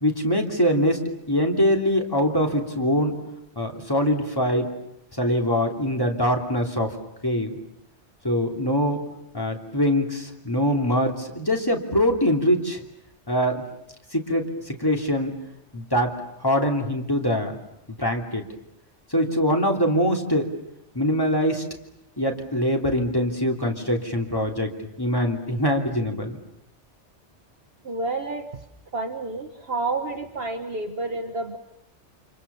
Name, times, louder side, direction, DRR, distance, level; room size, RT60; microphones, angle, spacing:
voice 1, 0.0-1.0 1.3-3.2 3.5-4.7 5.2-6.9 7.2-7.6 8.2-9.0 9.3-12.8 13.3-13.6 14.1-15.3 15.7-16.1 16.4-17.6 17.9-18.4 19.1-20.5 20.9-21.6 22.2-24.7 25.0-26.4, equal, 20° left, 2 dB, 3.1 m, -23 dB
voice 2, 27.8-28.5 28.9-31.6, right 3 dB, 55° right, 3 dB, 1.6 m, -29 dB
29.0 x 27.0 x 7.0 m, 0.82 s
omnidirectional pair, 1.2 m